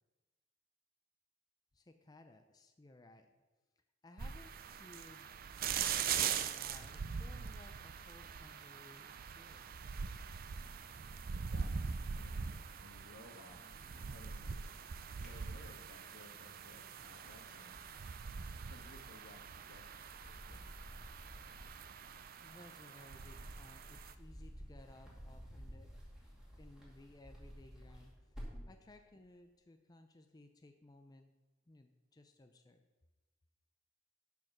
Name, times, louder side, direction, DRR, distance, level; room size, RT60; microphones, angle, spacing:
voice 1, 1.7-3.4 4.0-5.3 6.0-10.0 22.4-26.0 26.6-31.3 31.7-32.9, left 2 dB, 20° left, 7 dB, 0.5 m, -60 dB
sound 1, 4.2-24.1, right 7 dB, 45° right, 0.4 m, -42 dB
sound 2, 10.6-12.7 13.0-14.6 15.0-16.0 16.5-28.8, equal, 5° right, 2.3 m, -54 dB
voice 2, 11.3-11.8 12.1-12.5 12.8-13.6 13.9-14.7 15.2-17.8 18.6-19.9 20.2-20.7, left 2 dB, 80° left, 4 dB, 1.3 m, -59 dB
11.0 x 4.7 x 6.0 m, 1.1 s
head